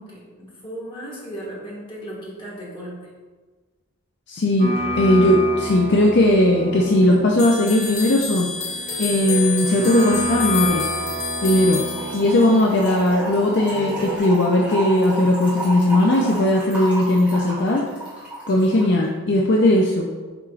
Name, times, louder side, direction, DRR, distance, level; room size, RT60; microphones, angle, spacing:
voice 1, 0.0-3.1, right 1 dB, 25° left, -6 dB, 1.7 m, -36 dB
voice 2, 4.3-8.5 9.0-10.9 11.4-11.8 12.1-17.9 18.5-20.1, left 1 dB, 50° left, -1 dB, 0.5 m, -18 dB
sound 1, 4.6-14.2, equal, 40° right, 0.7 m, -30 dB
sound 2, 7.4-12.6, left 5 dB, 70° left, 1.3 m, -29 dB
Trickle dribble / Fill (with liquid), 11.9-19.0, right 1 dB, 5° right, 1.9 m, -32 dB
8.7 x 4.4 x 2.5 m, 1.4 s
head